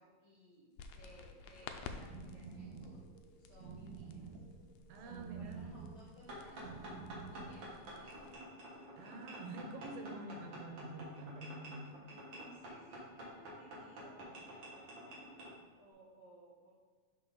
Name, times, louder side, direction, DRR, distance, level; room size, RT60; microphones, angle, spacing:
voice 1, 0.0-3.0 3.4-4.4 5.0-7.0 7.3-8.3 12.0-16.7, equal, 65° left, -8 dB, 1.2 m, -60 dB
sound 1, 0.8-8.4, left 5 dB, 85° left, 2.3 m, -53 dB
sound 2, 1.6-7.7, right 5 dB, 70° right, 1.6 m, -50 dB
voice 2, 4.9-5.7 9.0-12.0, right 2 dB, 90° right, 4 dB, 2.5 m, -47 dB
sound 3, 6.3-15.5, right 1 dB, 45° right, 1.7 m, -49 dB
6.0 x 5.6 x 3.9 m, 1.5 s
omnidirectional pair, 3.9 m